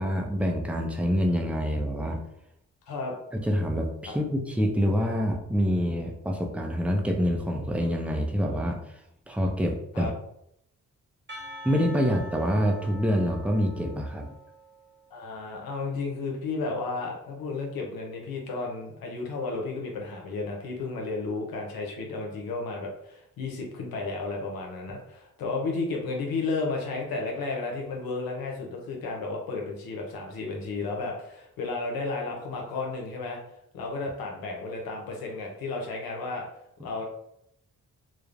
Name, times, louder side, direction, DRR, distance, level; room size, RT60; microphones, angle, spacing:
voice 1, 0.0-2.2 3.3-8.8 9.3-10.1 11.6-14.3, equal, 5° right, 1 dB, 0.5 m, -26 dB
Percussion, 11.3-15.2, equal, 30° right, 0.9 m, -45 dB
voice 2, 15.1-33.4 33.7-36.4 36.8-37.0, left 3 dB, 85° left, 0 dB, 0.7 m, -33 dB
3.1 x 2.0 x 2.4 m, 0.77 s
cardioid pair, 55°, 34 cm